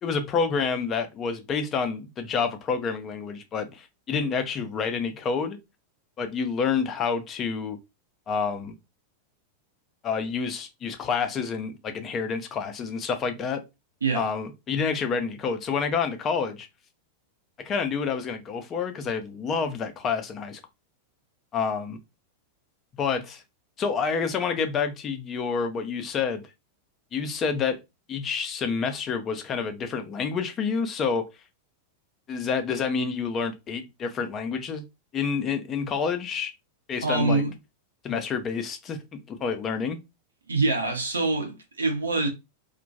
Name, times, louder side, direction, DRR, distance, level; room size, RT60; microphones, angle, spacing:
voice 1, 0.0-5.6 6.2-7.8 8.3-8.7 10.0-13.6 14.1-16.7 17.6-20.6 21.5-22.0 23.0-23.4 23.8-26.4 27.1-27.8 28.1-31.3 32.3-34.8 35.1-36.5 36.9-37.4 38.0-40.0, left 5 dB, 30° left, 0.4 m, -28 dB
voice 2, 37.0-37.5 40.5-42.3, right 3 dB, 75° right, 0.6 m, -25 dB
2.2 x 2.1 x 2.7 m
figure-of-eight pair, 90°, 0 cm